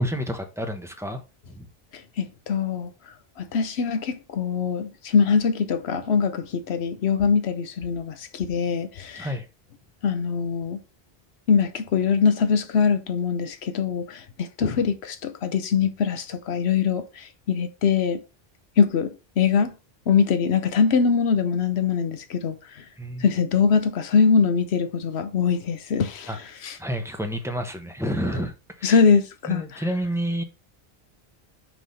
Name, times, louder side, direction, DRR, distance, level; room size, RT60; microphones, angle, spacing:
voice 1, 0.0-1.7 9.1-9.5 23.0-23.2 26.3-26.4 26.8-29.0 29.5-30.4, equal, 5° right, 1.0 m, -29 dB
voice 2, 1.9-2.9 3.4-9.3 10.0-10.8 11.5-18.2 18.8-19.7 20.1-22.8 23.2-26.8 28.8-29.8, left 6 dB, 90° left, 1.0 m, -23 dB
6.1 x 3.4 x 5.5 m
omnidirectional pair, 1.0 m